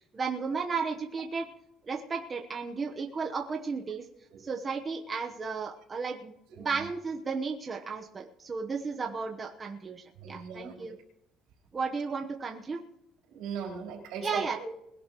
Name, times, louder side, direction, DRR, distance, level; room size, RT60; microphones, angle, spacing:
voice 1, 0.1-1.5 1.9-4.0 4.4-10.9 11.7-12.8 14.2-14.7, right 5 dB, 25° right, 2 dB, 1.1 m, -34 dB
voice 2, 6.5-6.9 10.2-10.9 13.3-14.7, right 6 dB, 80° right, 0 dB, 4.0 m, -39 dB
21.0 x 11.5 x 3.1 m, 0.82 s
cardioid pair, 125°, 0 cm